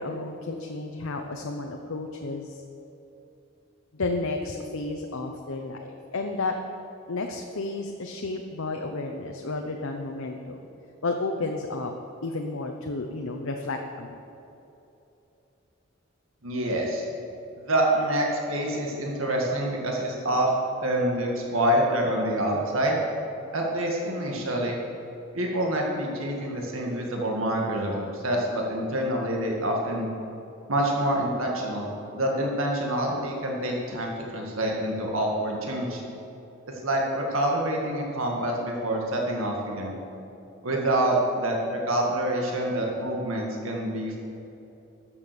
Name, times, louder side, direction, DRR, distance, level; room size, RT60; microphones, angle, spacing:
voice 1, 0.0-2.6 3.9-6.5 7.1-10.6 11.0-11.9 12.2-14.2, left 3 dB, 85° left, 3 dB, 0.8 m, -32 dB
voice 2, 16.4-17.0 17.6-20.5 20.8-23.0 23.5-24.8 25.3-30.1 30.7-36.0 36.8-40.0 40.6-44.2, right 1 dB, 85° right, 0 dB, 1.8 m, -26 dB
13.0 x 7.3 x 6.7 m, 2.9 s
head